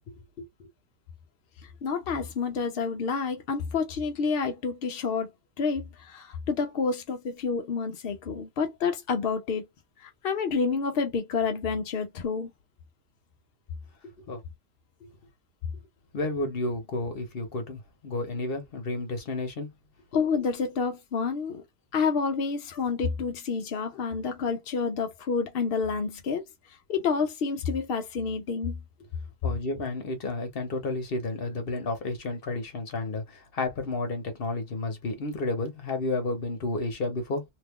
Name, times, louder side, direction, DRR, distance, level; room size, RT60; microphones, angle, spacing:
voice 1, 0.1-0.7 14.0-14.4 15.0-15.1 16.1-19.7 29.4-37.4, left 2 dB, 40° left, 1.0 m, -32 dB
voice 2, 1.6-5.3 5.6-9.7 10.0-12.5 20.1-21.6 21.9-28.8, left 5 dB, 70° left, 0.5 m, -29 dB
2.9 x 2.3 x 3.6 m
omnidirectional pair, 1.7 m